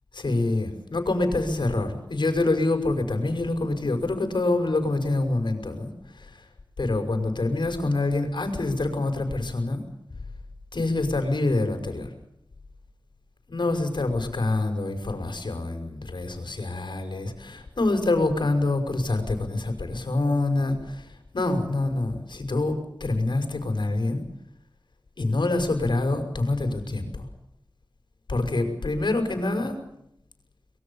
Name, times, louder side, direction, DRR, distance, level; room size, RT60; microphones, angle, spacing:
voice 1, 0.1-5.9 6.8-9.8 10.7-12.1 13.5-21.0 21.3-22.7 23.0-24.2 25.2-27.3 28.3-29.8, left 2 dB, 70° left, 6 dB, 5.8 m, -26 dB
24.5 x 22.5 x 7.1 m, 0.78 s
wide cardioid pair, 70°, 8 cm